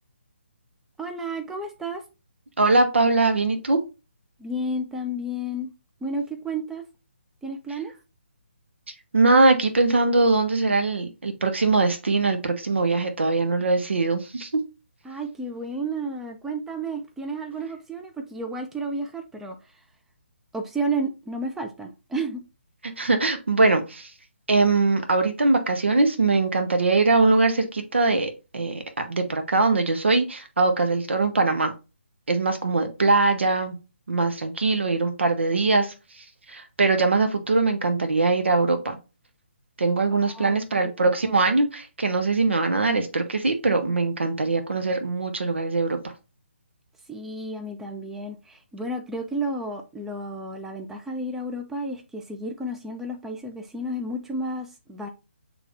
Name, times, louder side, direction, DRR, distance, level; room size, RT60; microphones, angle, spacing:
voice 1, 1.0-2.0 4.4-5.7 6.0-6.8 7.4-7.9 15.0-19.6 20.5-22.4 40.1-40.6 47.1-55.1, right 1 dB, 5° right, 0.4 m, -31 dB
voice 2, 2.6-3.8 9.1-14.6 22.8-24.1 24.5-31.7 32.3-33.8 34.1-35.9 36.5-39.0 39.8-46.0, right 3 dB, 70° right, 0.9 m, -22 dB
5.9 x 3.1 x 2.5 m
figure-of-eight pair, 145°, 7 cm